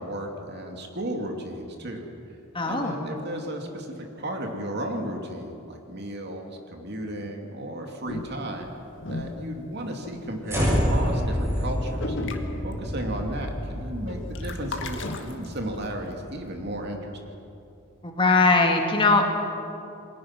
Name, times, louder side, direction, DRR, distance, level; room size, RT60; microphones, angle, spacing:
voice 1, 0.0-2.1 2.6-8.7 9.1-12.3 12.6-17.2, right 1 dB, 50° right, 2 dB, 2.7 m, -34 dB
voice 2, 2.5-3.0 18.0-19.3, left 3 dB, 25° left, 3 dB, 2.1 m, -20 dB
sound 1, 8.1-10.3 10.7-11.0 11.2-11.4 11.7-11.8 12.0-13.2 13.5-15.9, left 2 dB, 60° left, 1.9 m, -35 dB
sound 2, 10.5-16.8, equal, 15° right, 7.1 m, -29 dB
28.5 x 21.5 x 6.1 m, 2.7 s
head